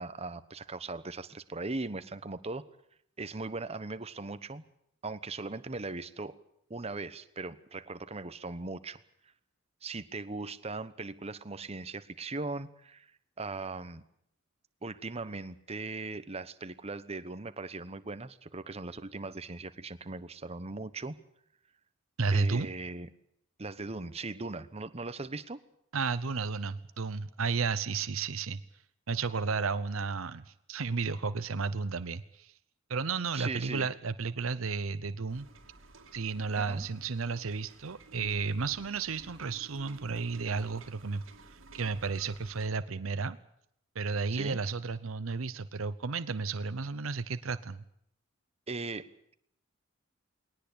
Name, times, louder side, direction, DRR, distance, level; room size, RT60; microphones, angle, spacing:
voice 1, 0.0-2.6 3.2-4.7 5.0-6.4 6.7-9.0 9.8-13.1 13.4-14.0 14.8-21.2 22.3-23.1 23.6-25.6 33.3-33.9 36.5-36.9 44.3-44.6 48.7-49.1, right 3 dB, 30° right, 12 dB, 1.1 m, -39 dB
voice 2, 22.2-22.7 25.9-28.6 29.1-32.5 32.9-35.5 36.1-43.4 43.9-47.8, right 4 dB, 85° right, 13 dB, 0.8 m, -33 dB
sound 1, 35.3-42.7, right 2 dB, 70° right, 2.2 m, -54 dB
20.5 x 19.0 x 8.6 m, 0.72 s
head